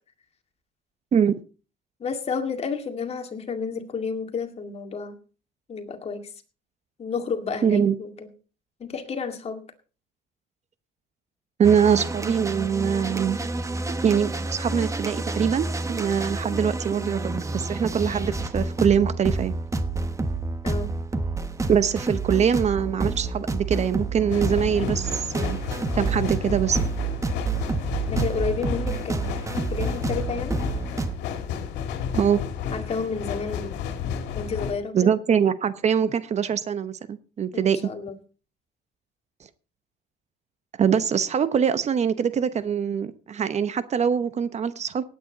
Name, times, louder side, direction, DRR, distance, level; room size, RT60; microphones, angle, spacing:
voice 1, 2.0-5.2 5.7-6.3 7.0-8.3 8.8-9.6 20.6-20.9 28.1-30.6 32.7-33.8 34.3-35.1 37.5-38.2, left 5 dB, 40° left, 5 dB, 2.2 m, -31 dB
voice 2, 7.6-7.9 11.6-13.4 14.0-19.5 21.7-25.6 25.9-26.8 32.1-32.4 34.9-37.9 40.8-45.0, right 7 dB, 40° right, 13 dB, 0.9 m, -23 dB
sound 1, 11.6-31.2, right 3 dB, 20° right, 1.2 m, -29 dB
sound 2, 24.3-34.7, left 7 dB, 90° left, 2.2 m, -32 dB
18.0 x 9.3 x 4.0 m, 0.36 s
cardioid pair, 110°, 17 cm